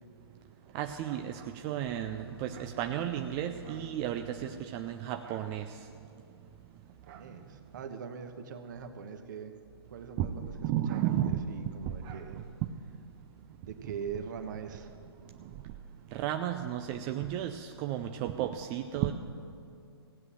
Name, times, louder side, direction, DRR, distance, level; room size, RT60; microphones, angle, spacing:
voice 1, 0.7-5.6 7.1-7.2 10.2-11.7 12.0-12.2 12.6-12.7 16.1-19.1, right 11 dB, 20° right, 6 dB, 0.4 m, -33 dB
sound 1, 1.8-5.7, right 2 dB, 65° right, 1.4 m, -50 dB
voice 2, 7.0-9.6 9.9-10.5 10.9-12.5 13.6-14.9, right 6 dB, 45° right, 7 dB, 1.1 m, -42 dB
16.5 x 8.2 x 7.6 m, 2.6 s
figure-of-eight pair, 125°, 14 cm